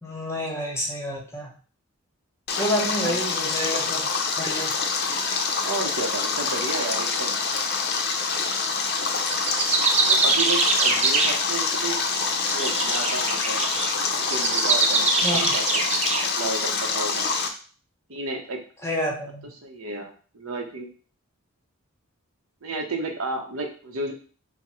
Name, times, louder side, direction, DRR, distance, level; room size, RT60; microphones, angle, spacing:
voice 1, 0.0-1.5 2.6-4.1 4.4-4.7 15.2-15.6 18.8-19.5, equal, 10° left, -2 dB, 0.8 m, -29 dB
Stream, 2.5-17.5, left 4 dB, 50° left, 0.5 m, -26 dB
voice 2, 5.6-7.4 10.1-12.0 12.5-13.6 14.1-17.3 18.1-18.6 19.6-20.9 22.6-24.1, right 3 dB, 70° right, 3 dB, 0.7 m, -32 dB
sound 1, 8.2-8.4 9.2-11.7 12.1-16.3, right 4 dB, 30° right, 0.4 m, -24 dB
3.5 x 2.0 x 4.2 m, 0.40 s
head